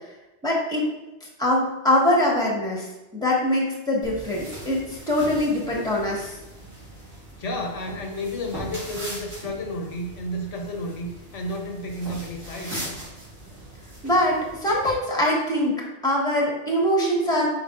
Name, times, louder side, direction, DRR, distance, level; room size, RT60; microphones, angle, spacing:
voice 1, 0.4-0.9 1.4-2.9 3.1-6.4 14.0-17.5, left 1 dB, 5° left, -3 dB, 1.4 m, -23 dB
sound 1, 4.0-15.0, right 1 dB, 90° right, 2.7 m, -40 dB
voice 2, 7.4-12.8, left 1 dB, 80° left, 3 dB, 1.2 m, -32 dB
7.9 x 4.7 x 2.5 m, 1.0 s
omnidirectional pair, 1.2 m